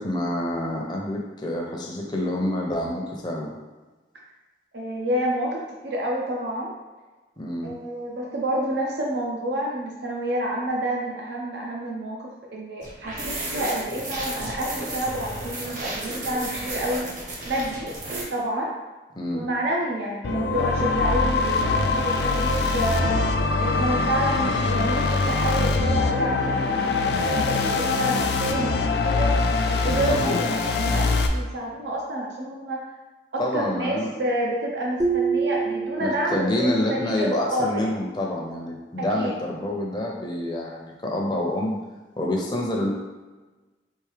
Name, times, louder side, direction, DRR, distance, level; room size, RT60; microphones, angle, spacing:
voice 1, 0.0-3.5 7.4-7.7 19.1-19.4 30.1-30.3 33.4-34.1 36.0-41.8 42.2-42.9, left 1 dB, 25° left, -1 dB, 0.6 m, -27 dB
voice 2, 4.7-6.7 7.6-17.1 17.4-17.9 18.3-18.7 19.3-23.2 23.6-29.3 29.8-32.8 33.3-37.8 39.1-39.3, right 1 dB, 75° right, -2 dB, 0.7 m, -28 dB
sound 1, 12.8-18.2, right 2 dB, 45° right, 0.9 m, -33 dB
sound 2, 20.2-31.3, left 3 dB, 70° left, 0.4 m, -23 dB
sound 3, 35.0-36.7, right 5 dB, 20° right, 0.4 m, -26 dB
4.5 x 2.6 x 3.3 m, 1.2 s
head